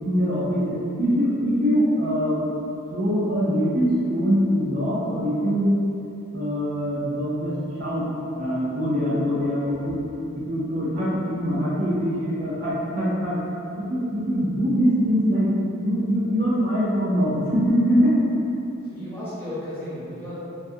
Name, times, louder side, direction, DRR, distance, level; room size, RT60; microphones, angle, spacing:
voice 1, 0.0-2.4 2.9-5.8 6.3-8.1 8.4-10.0 10.3-13.4 13.9-15.5 15.8-18.1, equal, 45° right, -8 dB, 0.5 m, -23 dB
voice 2, 18.8-20.3, left 1 dB, 10° left, -13 dB, 0.8 m, -35 dB
2.6 x 2.3 x 2.6 m, 2.8 s
head